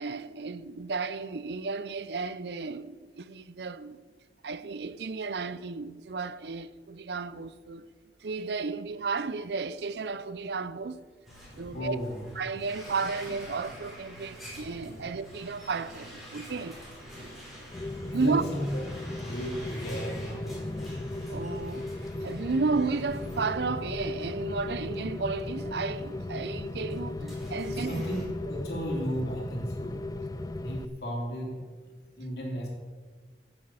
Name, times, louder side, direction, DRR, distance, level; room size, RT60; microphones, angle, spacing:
voice 1, 0.0-4.0 4.4-7.9 8.2-11.0 11.6-12.0 12.4-16.8 17.6-17.7 18.1-18.4 21.3-21.9 22.2-28.0, right 4 dB, 65° right, 0.6 m, -33 dB
sound 1, 11.2-24.3 24.7-24.9 25.7-25.8 26.8-28.2, equal, ahead, 4.3 m, -47 dB
voice 2, 11.7-12.2 18.1-18.7 19.0-20.9 27.7-30.0 30.6-31.6 32.2-32.7, equal, 60° left, 3.4 m, -35 dB
Rain, 17.7-30.9, left 2 dB, 20° left, 0.4 m, -36 dB
9.5 x 8.9 x 7.9 m
head